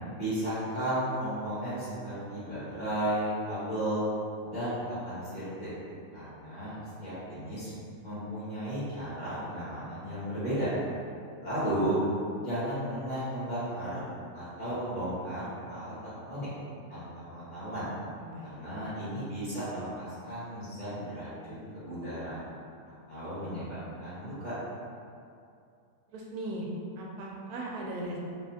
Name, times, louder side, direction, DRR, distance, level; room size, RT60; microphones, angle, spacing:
voice 1, 0.2-4.1 4.4-5.7 6.1-7.7 8.0-10.7 11.4-12.0 12.4-14.0 14.3-16.5 16.9-17.9 18.4-22.4 23.1-24.5, right 1 dB, 30° left, -13 dB, 1.5 m, -34 dB
voice 2, 18.2-18.7 26.1-26.7 27.0-28.2, right 1 dB, 80° right, -2 dB, 1.1 m, -38 dB
3.7 x 3.1 x 2.7 m, 2.4 s
omnidirectional pair, 1.6 m